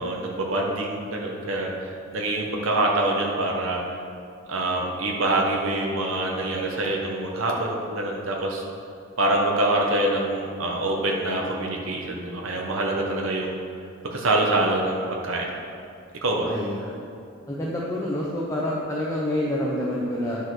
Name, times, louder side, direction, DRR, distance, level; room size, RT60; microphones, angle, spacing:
voice 1, 0.0-3.8 4.5-8.6 9.2-13.6 14.0-15.5 16.2-16.5, right 2 dB, 85° right, -1 dB, 1.2 m, -25 dB
voice 2, 16.5-17.0 17.5-20.4, left 1 dB, 15° left, -5 dB, 0.9 m, -27 dB
10.5 x 5.0 x 6.2 m, 2.6 s
head